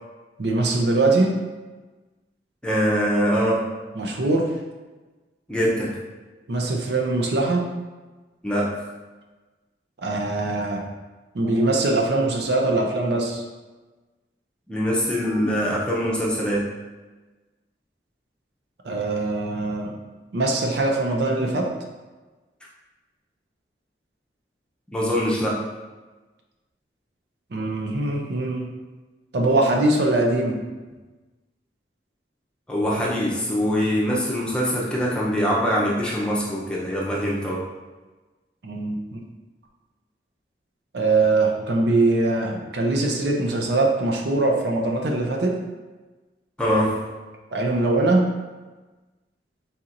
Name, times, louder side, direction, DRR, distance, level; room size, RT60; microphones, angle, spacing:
voice 1, 0.4-1.4 4.0-4.5 6.5-7.7 10.0-10.9 11.3-13.4 18.8-20.0 20.3-21.7 27.5-28.7 29.3-30.6 38.6-39.2 40.9-45.6 47.5-48.3, right 2 dB, 70° right, 1 dB, 0.6 m, -22 dB
voice 2, 2.6-3.6 5.5-6.0 8.4-8.9 14.7-16.6 24.9-25.6 32.7-37.6 46.6-47.0, equal, 5° left, -5 dB, 0.6 m, -23 dB
4.3 x 4.1 x 2.5 m, 1.2 s
head